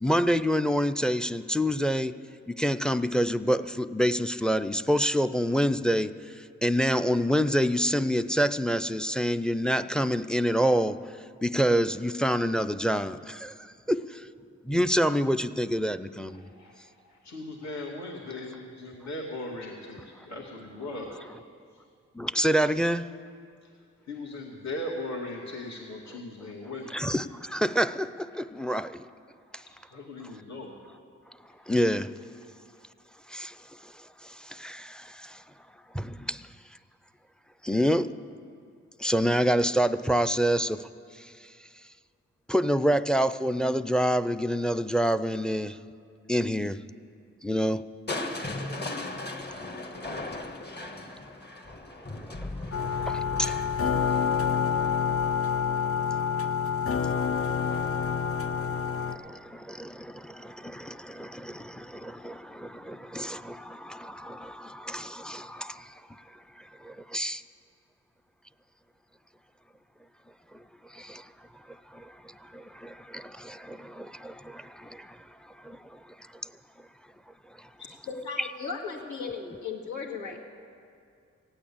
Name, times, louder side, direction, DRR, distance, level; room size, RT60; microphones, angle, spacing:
voice 1, 0.0-2.2 2.5-11.0 11.4-14.3 14.6-16.5 22.1-23.1 26.9-29.0 29.5-29.6 31.7-32.1 33.3-33.6 33.8-35.4 35.9-36.5 37.6-38.1 39.0-40.9 41.2-41.3 42.5-45.8 46.3-46.8 47.4-47.9 52.2-52.5 53.0-53.5 59.0-66.2 66.6-67.4 70.5-70.6 70.9-71.3 71.9-76.0 77.6-77.7 78.4-78.5, equal, 5° left, 0.4 m, -27 dB
voice 2, 16.3-21.2 24.1-27.1 29.5-29.6 29.9-30.7, left 2 dB, 70° left, 2.3 m, -38 dB
Crushing, 48.1-56.0 57.6-58.1 58.6-58.7, left 2 dB, 35° left, 1.5 m, -38 dB
sound 1, 52.7-59.2, left 6 dB, 50° left, 0.8 m, -27 dB
voice 3, 77.8-80.4, left 5 dB, 85° left, 2.1 m, -36 dB
16.5 x 8.9 x 8.5 m
cardioid pair, 60°, 29 cm